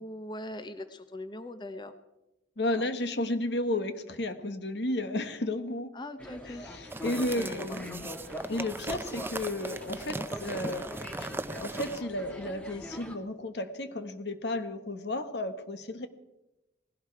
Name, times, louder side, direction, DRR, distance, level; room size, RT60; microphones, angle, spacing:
voice 1, 0.0-1.9 2.7-2.9 5.9-6.7 7.3-7.8 10.1-10.3, left 1 dB, 25° left, 10 dB, 0.7 m, -41 dB
voice 2, 2.6-5.9 6.4-8.1 8.5-10.9 11.2-16.1, left 1 dB, 75° left, 10 dB, 1.3 m, -33 dB
sound 1, 6.2-13.2, equal, 5° left, 1.6 m, -42 dB
sound 2, 6.9-12.0, right 2 dB, 15° right, 0.5 m, -39 dB
18.5 x 16.5 x 4.6 m, 0.96 s
head